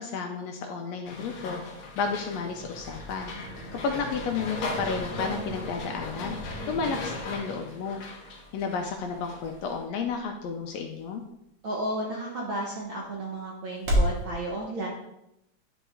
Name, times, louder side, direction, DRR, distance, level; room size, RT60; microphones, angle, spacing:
voice 1, 0.0-1.6 2.0-3.3 3.7-6.4 6.7-8.0 8.5-11.2, left 5 dB, 80° left, 3 dB, 1.7 m, -32 dB
sound 1, 1.0-9.8, left 3 dB, 60° left, 1.4 m, -39 dB
sound 2, 2.5-7.4, right 1 dB, 15° right, 0.9 m, -42 dB
voice 2, 6.6-7.0 11.6-14.9, right 1 dB, 65° right, -2 dB, 1.3 m, -33 dB
sound 3, 8.0-14.2, equal, 45° right, 1.8 m, -34 dB
10.5 x 4.0 x 3.5 m, 0.83 s
omnidirectional pair, 3.4 m